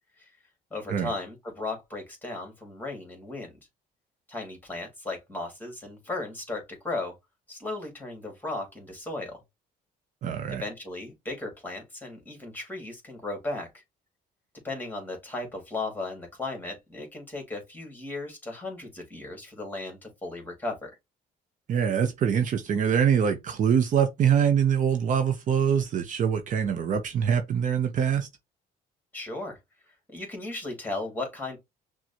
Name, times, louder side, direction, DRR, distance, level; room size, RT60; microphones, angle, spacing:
voice 1, 0.7-3.5 4.3-7.1 7.5-9.4 10.5-13.8 14.6-20.9 29.1-29.6 30.1-31.6, left 2 dB, 10° left, 1.9 m, -36 dB
voice 2, 10.2-10.6 21.7-28.3, right 8 dB, 50° right, 0.7 m, -24 dB
5.9 x 2.3 x 2.7 m
cardioid pair, 110°, 17 cm